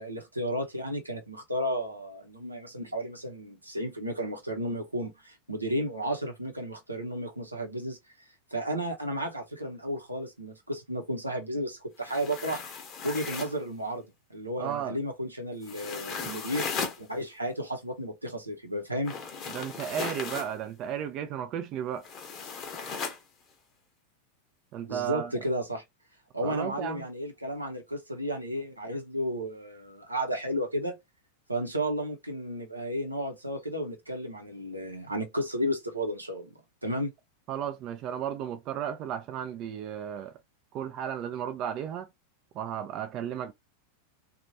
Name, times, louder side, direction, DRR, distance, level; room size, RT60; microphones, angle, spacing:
voice 1, 0.0-8.0 8.5-12.6 13.0-19.1 24.8-25.8 26.3-31.0 31.5-36.5 36.8-37.1, equal, 85° right, 0.8 m, -33 dB
sound 1, 12.0-13.6 15.6-17.0 19.0-20.5 22.0-23.2, left 5 dB, 30° left, 0.9 m, -36 dB
voice 2, 14.6-15.0 19.5-22.1 24.7-25.3 26.4-27.1 37.5-40.4 40.7-42.1 42.5-43.5, right 9 dB, 35° right, 0.4 m, -34 dB
2.9 x 2.4 x 2.7 m
figure-of-eight pair, 90°, 0 cm